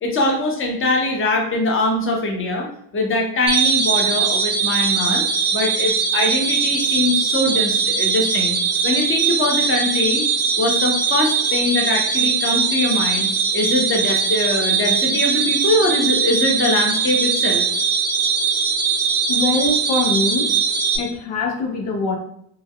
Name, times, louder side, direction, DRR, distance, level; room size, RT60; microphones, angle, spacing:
voice 1, 0.0-5.2 5.5-8.5 8.8-10.2 10.6-17.6, left 2 dB, 25° left, 1 dB, 0.6 m, -22 dB
sound 1, 3.5-21.0, right 6 dB, 25° right, 0.7 m, -20 dB
voice 2, 19.3-20.5 20.9-22.2, left 3 dB, 85° left, 2 dB, 0.7 m, -23 dB
3.3 x 2.2 x 2.2 m, 0.69 s
cardioid pair, 110°, 47 cm